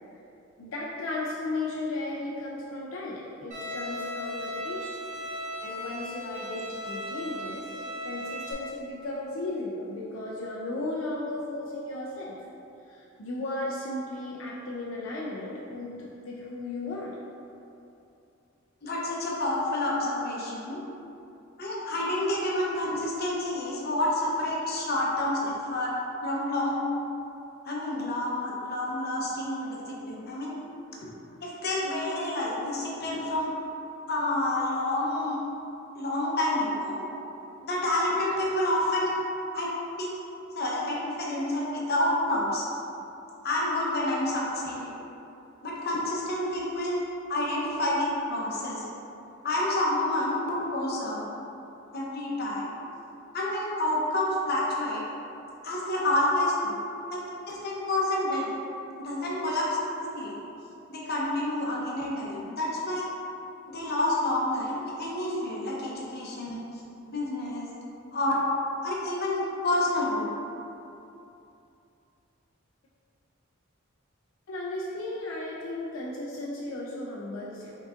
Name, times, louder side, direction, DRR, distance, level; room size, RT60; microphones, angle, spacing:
voice 1, 0.6-4.9 5.6-7.7 8.0-12.4 12.9-17.2 26.2-26.3 29.2-29.3 74.5-77.7, left 2 dB, 80° left, -4 dB, 0.5 m, -35 dB
Bowed string instrument, 3.5-8.5, equal, 40° right, 1.0 m, -36 dB
voice 2, 18.8-20.8 21.6-25.9 26.2-26.9 27.7-30.5 31.4-33.5 34.1-35.4 36.0-37.0 37.6-39.1 39.5-39.7 40.0-40.1 40.5-42.7 43.4-44.9 45.6-48.9 49.4-51.2 51.9-52.7 53.3-55.1 55.6-56.7 57.1-57.2 57.5-58.5 59.0-60.3 60.9-63.1 63.7-66.8 67.1-67.7 68.1-68.4 68.8-70.3, left 1 dB, 50° left, -4 dB, 0.8 m, -29 dB
5.1 x 3.8 x 2.5 m, 2.8 s
head